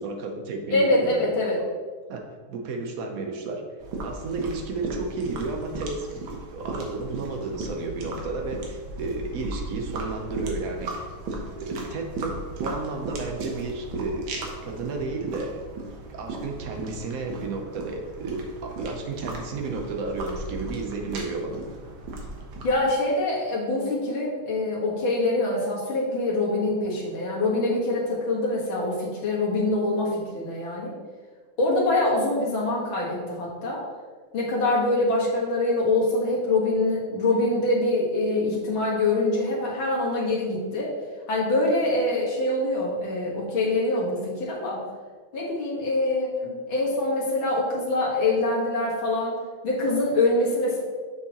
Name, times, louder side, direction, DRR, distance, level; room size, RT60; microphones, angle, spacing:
voice 1, 0.0-1.3 2.1-3.7 4.0-11.1 11.6-14.3 14.6-15.6 16.1-21.6, right 3 dB, 60° right, 3 dB, 1.0 m, -32 dB
voice 2, 0.7-1.6 22.6-30.9 31.6-33.8 34.3-40.9 41.3-44.8 45.3-49.4 49.6-50.8, left 2 dB, 70° left, -5 dB, 2.4 m, -24 dB
sound 1, 3.8-22.8, right 2 dB, 75° right, 1.8 m, -36 dB
6.8 x 6.1 x 3.0 m, 1.5 s
omnidirectional pair, 2.2 m